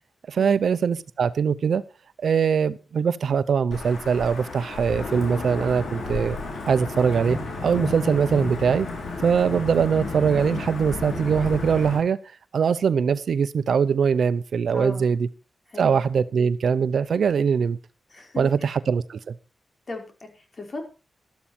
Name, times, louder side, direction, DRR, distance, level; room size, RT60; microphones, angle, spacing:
voice 1, 0.3-1.8 2.2-6.4 6.7-7.4 7.6-8.9 9.2-12.2 12.5-15.3 15.8-17.8 18.4-19.3, right 6 dB, 75° right, 0.9 m, -22 dB
Wind / Thunder / Rain, 3.7-12.0, left 3 dB, 80° left, 6.2 m, -32 dB
voice 2, 14.7-15.1 15.7-15.9 18.1-18.7 19.9-20.8, left 2 dB, 45° left, 5.2 m, -36 dB
13.0 x 12.5 x 4.4 m
cardioid pair, 75°, 0 cm